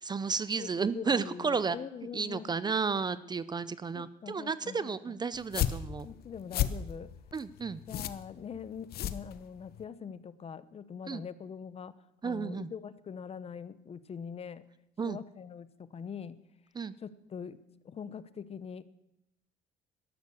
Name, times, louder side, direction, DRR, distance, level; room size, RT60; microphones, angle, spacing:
voice 1, 0.0-1.8 2.1-6.1 7.3-7.8 11.1-11.2 12.2-12.7 15.0-15.2 16.7-16.9, right 5 dB, 25° right, 16 dB, 0.5 m, -32 dB
voice 2, 0.6-2.6 3.9-5.2 6.0-7.1 7.9-11.9 12.2-14.6 15.0-16.4 17.0-17.6 17.8-18.8, left 7 dB, 35° left, 16 dB, 0.8 m, -43 dB
sound 1, 5.3-9.8, left 11 dB, 65° left, 0.9 m, -34 dB
13.0 x 11.5 x 7.1 m, 0.84 s
cardioid pair, 110°, 17 cm